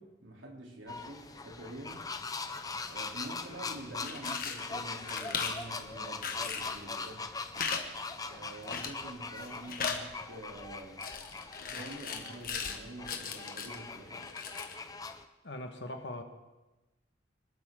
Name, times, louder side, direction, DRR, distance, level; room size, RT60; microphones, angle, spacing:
voice 1, 0.0-2.0 2.8-7.3 8.2-11.0 11.6-14.3, right 1 dB, 80° right, 3.6 m, -46 dB
sound 1, 0.9-15.2, left 4 dB, 20° left, 0.7 m, -41 dB
sound 2, 4.0-4.7 5.1-5.7 6.2-6.8 7.5-7.8 8.1-8.2 8.7-9.1 9.4-10.0 11.0-12.8 13.0-13.8 14.2-14.8, left 6 dB, 50° left, 1.6 m, -37 dB
voice 2, 15.4-16.2, left 1 dB, 65° left, 1.7 m, -40 dB
25.5 x 13.0 x 3.9 m
head